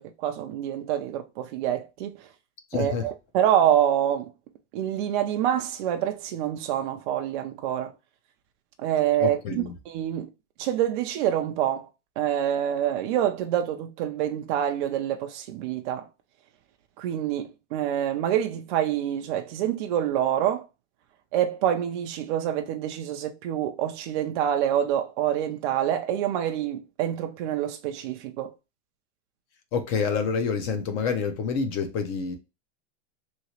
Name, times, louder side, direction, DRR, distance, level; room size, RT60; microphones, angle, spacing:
voice 1, 0.0-2.3 2.7-4.3 4.7-7.9 8.8-10.3 10.6-11.9 12.2-16.1 17.0-20.7 21.3-28.5, right 10 dB, 45° right, 0.4 m, -26 dB
voice 2, 2.7-3.1 9.2-9.7 29.7-32.4, left 5 dB, 35° left, 0.6 m, -27 dB
3.0 x 2.8 x 2.7 m
supercardioid pair, 150°, 36 cm